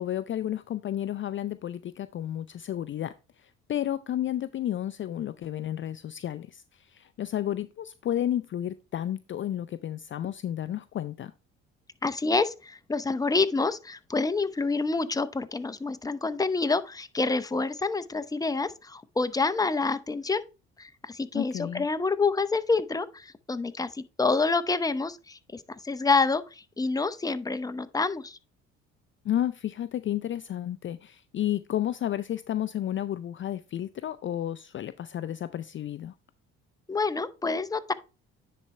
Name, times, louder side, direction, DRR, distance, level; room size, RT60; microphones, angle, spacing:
voice 1, 0.0-3.1 3.4-11.3 21.3-21.8 29.2-36.1, left 11 dB, 40° left, 0.4 m, -32 dB
voice 2, 12.0-20.4 20.8-28.4 36.9-37.9, left 3 dB, 10° left, 0.7 m, -27 dB
10.0 x 4.3 x 3.2 m
supercardioid pair, 70°, 30 cm